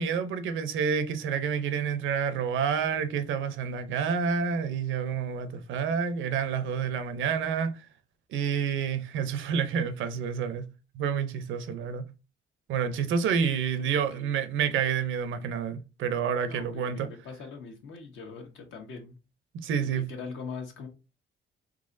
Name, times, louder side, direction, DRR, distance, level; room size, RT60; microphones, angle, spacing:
voice 1, 0.0-7.7 8.3-10.6 10.9-12.0 12.7-17.1 19.6-20.1, right 7 dB, 80° right, 0.6 m, -29 dB
voice 2, 13.8-14.3 16.4-19.2 19.7-20.9, left 5 dB, 75° left, 1.2 m, -42 dB
3.9 x 2.9 x 2.6 m
cardioid pair, 90°, 20 cm